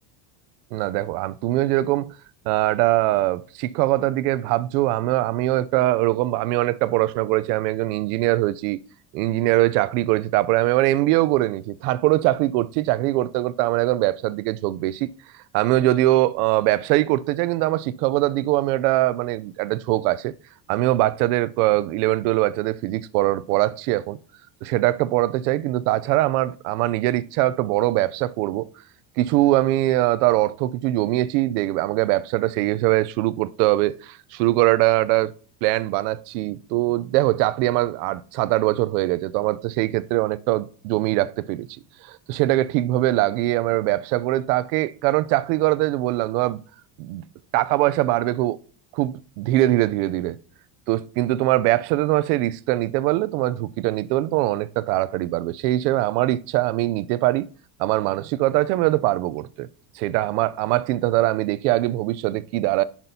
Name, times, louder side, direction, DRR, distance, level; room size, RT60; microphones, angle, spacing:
voice 1, 0.7-2.1 2.5-8.8 9.1-15.1 15.5-20.3 20.7-24.2 24.6-28.7 29.2-35.3 35.6-41.7 42.0-46.6 47.0-47.3 47.5-48.6 48.9-50.4 50.9-57.5 57.8-59.7 59.9-62.8, right 16 dB, 70° right, 0.6 m, -22 dB
11.0 x 5.9 x 2.7 m
cardioid pair, 175°, 47 cm